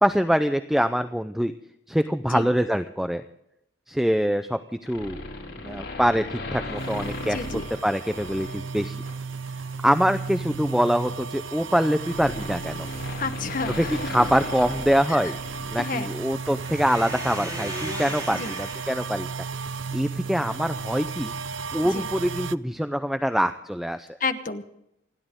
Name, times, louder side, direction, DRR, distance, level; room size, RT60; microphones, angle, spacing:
voice 1, 0.0-1.5 1.9-3.2 3.9-5.2 5.6-7.4 7.8-9.0 9.8-12.9 13.8-15.4 15.7-19.3 19.9-21.3 21.7-24.1, equal, ahead, 9 dB, 0.5 m, -24 dB
sound 1, 4.8-8.5 9.0-9.3 10.5-15.8 16.1-16.2, left 2 dB, 70° left, 6.0 m, -37 dB
sound 2, 6.6-19.0, right 1 dB, 20° right, 4.3 m, -42 dB
sound 3, 6.8-22.6, right 5 dB, 80° right, 0.5 m, -35 dB
voice 2, 7.2-7.7 13.2-14.1 15.1-15.2 15.8-16.1 18.3-18.5 21.8-22.1 24.2-24.6, left 4 dB, 45° left, 8 dB, 1.1 m, -31 dB
29.0 x 11.0 x 3.7 m, 0.83 s
head